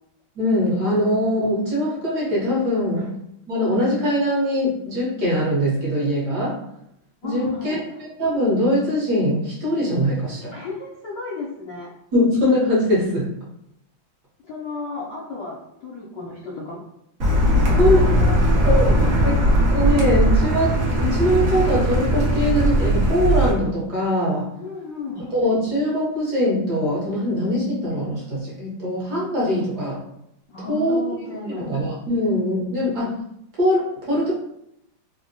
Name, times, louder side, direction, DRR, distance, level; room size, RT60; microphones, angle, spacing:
voice 1, 0.4-3.1 3.5-6.6 7.2-7.8 8.2-10.5 12.1-13.3 17.8-18.0 18.6-18.9 19.2-19.4 19.7-24.5 25.3-30.0 30.7-31.0 31.6-33.1 33.6-34.3, equal, 60° right, -6 dB, 1.2 m, -22 dB
voice 2, 7.2-7.8 10.5-11.9 14.4-16.8 17.5-19.3 24.6-25.3 30.5-31.8 32.6-32.9, left 3 dB, 75° left, -5 dB, 1.0 m, -34 dB
Car, 17.2-23.5, equal, 85° right, 0.7 m, -18 dB
3.4 x 2.0 x 2.6 m, 0.77 s
omnidirectional pair, 2.3 m